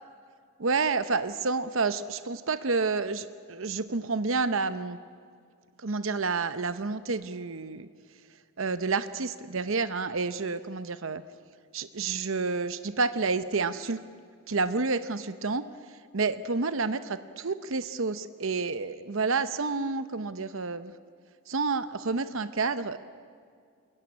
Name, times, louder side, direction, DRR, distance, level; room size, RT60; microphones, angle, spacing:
voice 1, 0.6-5.0 5.8-7.9 8.6-11.2 11.7-14.0 14.5-15.6 16.1-20.9 21.5-23.0, right 4 dB, 65° right, 12 dB, 0.8 m, -29 dB
27.0 x 21.0 x 9.8 m, 2.2 s
head